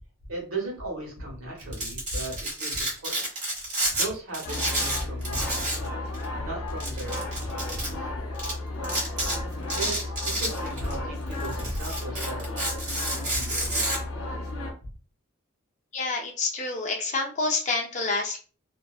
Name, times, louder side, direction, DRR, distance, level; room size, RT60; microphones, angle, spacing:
voice 1, 0.3-3.3 3.9-6.0 6.3-8.1 9.2-9.3 9.7-12.6 13.1-14.1 14.8-14.9, right 2 dB, 80° right, -2 dB, 1.2 m, -36 dB
Domestic sounds home sounds, 1.6-4.1 4.3-5.9 6.1-6.3 6.8-7.9 8.4-8.5 8.8-9.4 9.7-10.9 11.3-14.0, right 1 dB, 35° right, 1.1 m, -29 dB
sound 1, 4.4-14.7, left 2 dB, 85° left, 0.6 m, -33 dB
voice 2, 15.9-18.4, left 3 dB, 35° left, 1 dB, 0.5 m, -28 dB
2.6 x 2.2 x 2.3 m, 0.37 s
head